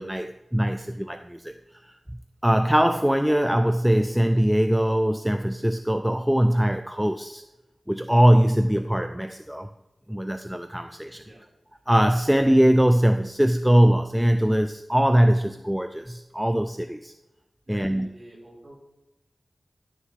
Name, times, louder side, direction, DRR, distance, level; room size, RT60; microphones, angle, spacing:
voice 1, 0.0-1.5 2.4-7.4 7.9-9.7 10.1-11.2 11.9-17.1 17.7-18.1, equal, 5° right, 0.4 m, -21 dB
voice 2, 17.7-18.7, right 1 dB, 40° right, 3.6 m, -47 dB
12.5 x 6.4 x 3.6 m
wide cardioid pair, 80°, 0 cm